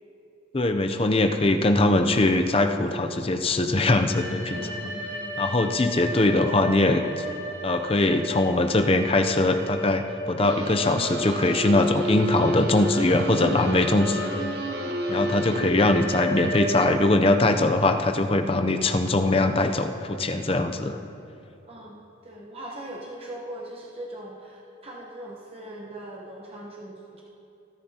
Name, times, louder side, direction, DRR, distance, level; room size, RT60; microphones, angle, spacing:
voice 1, 0.5-4.7 5.4-7.2 7.6-14.5 15.1-21.0, left 2 dB, 30° left, 6 dB, 0.6 m, -22 dB
sound 1, 3.8-16.9, equal, 75° right, 2.9 m, -36 dB
voice 2, 4.5-5.8 21.7-27.2, right 1 dB, 30° right, -3 dB, 1.1 m, -41 dB
sound 2, 10.4-15.6, right 1 dB, 55° right, 0.9 m, -31 dB
24.5 x 10.5 x 2.9 m, 2.8 s
head